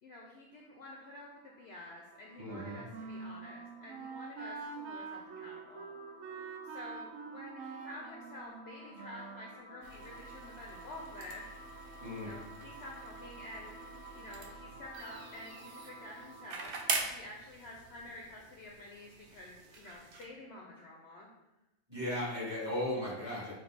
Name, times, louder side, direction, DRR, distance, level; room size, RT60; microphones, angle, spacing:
voice 1, 0.0-5.9 6.6-11.5 12.2-13.8 14.1-16.8 17.1-21.3, left 2 dB, 60° left, -1 dB, 0.7 m, -50 dB
sound 1, 0.5-17.2, right 1 dB, 20° left, 0.7 m, -53 dB
voice 2, 2.4-2.8 12.0-12.3 21.9-23.5, left 1 dB, 20° right, -8 dB, 1.6 m, -36 dB
Wind instrument woodwind instrument, 2.4-9.5, right 5 dB, 75° right, 1.0 m, -45 dB
sound 2, 9.8-20.2, right 4 dB, 60° right, 0.6 m, -43 dB
5.8 x 2.7 x 3.3 m, 0.97 s
omnidirectional pair, 1.4 m